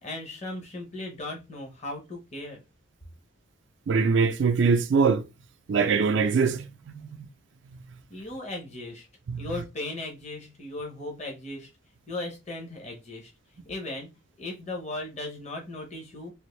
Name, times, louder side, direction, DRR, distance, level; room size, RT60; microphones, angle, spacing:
voice 1, 0.0-2.6 8.1-9.1 9.4-11.7 12.1-13.3 13.6-14.1 14.4-16.3, left 2 dB, 35° left, 0.8 m, -37 dB
voice 2, 3.9-5.2 5.7-7.2 9.3-9.4, right 5 dB, 60° right, 0.4 m, -23 dB
3.4 x 2.5 x 3.0 m
head